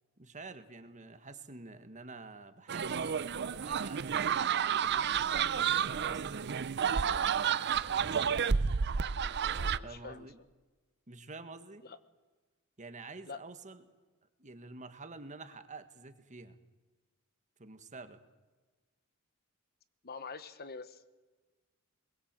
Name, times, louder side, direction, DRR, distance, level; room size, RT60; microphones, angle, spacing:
voice 1, 0.2-5.1 5.7-7.3 8.1-8.3 9.8-10.4 11.1-11.8 12.8-13.8 14.4-16.6 17.6-18.2, right 3 dB, 35° right, 9 dB, 1.6 m, -49 dB
sound 1, 2.7-9.8, right 7 dB, 50° right, 0.6 m, -31 dB
voice 2, 9.5-10.3 11.8-12.0 13.3-13.4 20.0-21.0, left 4 dB, 45° left, 12 dB, 1.1 m, -45 dB
22.0 x 20.5 x 7.6 m, 1.3 s
head